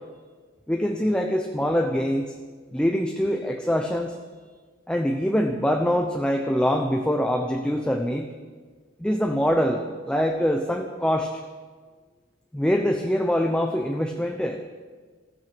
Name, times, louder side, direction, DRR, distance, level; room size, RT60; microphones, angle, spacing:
voice 1, 0.7-2.3 2.7-4.2 4.9-8.3 9.0-11.3 12.5-14.7, equal, 5° left, 3 dB, 0.8 m, -24 dB
14.5 x 14.0 x 6.1 m, 1.5 s
head